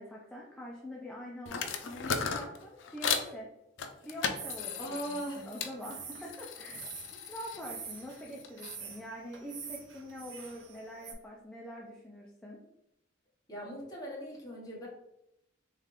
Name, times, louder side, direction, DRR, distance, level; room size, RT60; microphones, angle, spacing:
voice 1, 0.0-3.5 4.0-6.9 7.3-12.6, equal, 5° left, -4 dB, 0.5 m, -45 dB
sound 1, 1.5-3.3 3.8-5.7 6.1-8.8, left 6 dB, 75° left, 0.5 m, -37 dB
sound 2, 4.4-11.1, right 5 dB, 80° right, 0.8 m, -46 dB
voice 2, 4.8-5.5 13.5-14.9, equal, 20° left, -5 dB, 1.4 m, -39 dB
3.6 x 3.2 x 3.7 m, 0.84 s
head